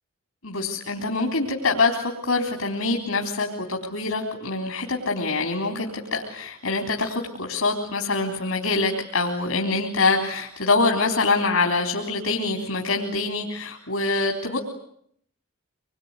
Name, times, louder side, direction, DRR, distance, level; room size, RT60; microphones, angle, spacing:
voice 1, 0.4-14.6, left 3 dB, 80° left, 2 dB, 3.8 m, -25 dB
26.0 x 23.0 x 9.7 m, 0.69 s
head